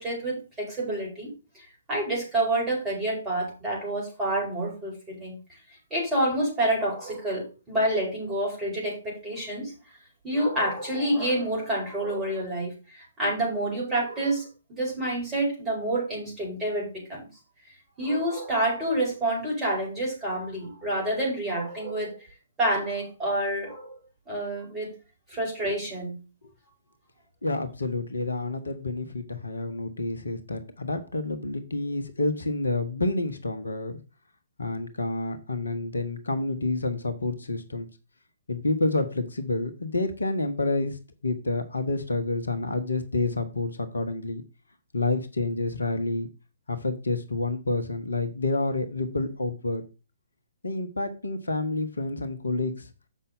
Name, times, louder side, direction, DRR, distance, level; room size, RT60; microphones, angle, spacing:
voice 1, 0.0-5.4 5.9-9.7 10.2-17.3 18.0-22.3 22.6-23.9 24.3-24.9 25.3-26.1, right 1 dB, 15° right, -3 dB, 5.2 m, -28 dB
voice 2, 27.4-34.0 34.6-37.9 38.5-41.0 41.2-44.4 44.9-46.3 46.7-49.8 50.6-52.9, left 2 dB, 70° left, 10 dB, 1.1 m, -29 dB
7.4 x 5.6 x 5.3 m, 0.31 s
figure-of-eight pair, 125°, 0 cm